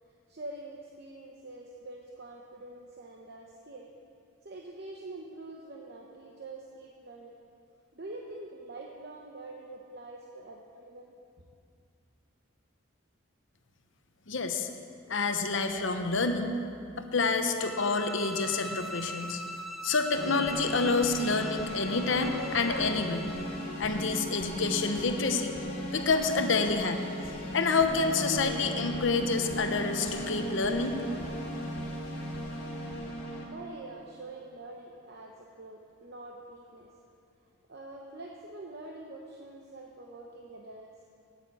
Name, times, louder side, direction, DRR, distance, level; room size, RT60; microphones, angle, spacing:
voice 1, 0.1-3.9 4.4-7.4 7.9-11.1 33.5-36.9 37.7-41.0, right 2 dB, 50° right, 0 dB, 0.9 m, -45 dB
voice 2, 14.3-14.7 15.1-16.5 17.0-19.4 19.8-23.3 23.8-25.5 25.9-27.0 27.5-31.0, left 4 dB, 65° left, 6 dB, 0.9 m, -28 dB
sound 1, 17.6-23.8, equal, ahead, 0.4 m, -42 dB
sound 2, 20.1-33.5, equal, 35° left, 2.8 m, -37 dB
8.9 x 8.7 x 8.3 m, 2.4 s
head